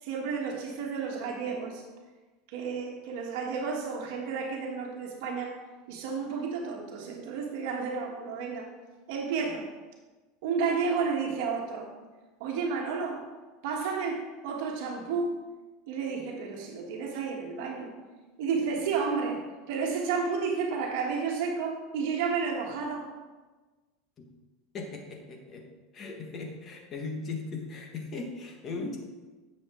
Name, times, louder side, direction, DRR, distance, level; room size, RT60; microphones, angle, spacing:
voice 1, 0.0-1.8 2.5-5.6 5.9-8.7 9.1-9.7 10.4-11.9 12.4-13.3 13.6-15.4 15.9-17.9 18.4-23.1, right 5 dB, 65° right, 0 dB, 1.5 m, -31 dB
voice 2, 24.7-25.7 25.9-29.0, left 3 dB, 30° left, 1 dB, 1.6 m, -38 dB
9.9 x 7.1 x 3.7 m, 1.2 s
supercardioid pair, 145°, 0 cm